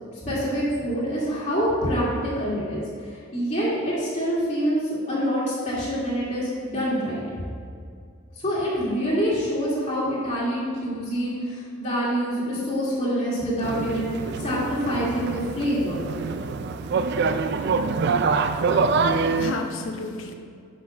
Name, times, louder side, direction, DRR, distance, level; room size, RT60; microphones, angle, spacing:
voice 1, 0.2-4.8 5.1-7.2 8.4-14.1 14.4-16.1, equal, 35° left, -8 dB, 2.0 m, -26 dB
sound 1, 13.6-19.5, right 4 dB, 50° right, 0.3 m, -25 dB
voice 2, 18.9-20.3, left 3 dB, 65° left, 4 dB, 0.8 m, -33 dB
6.5 x 5.9 x 5.5 m, 2.2 s
head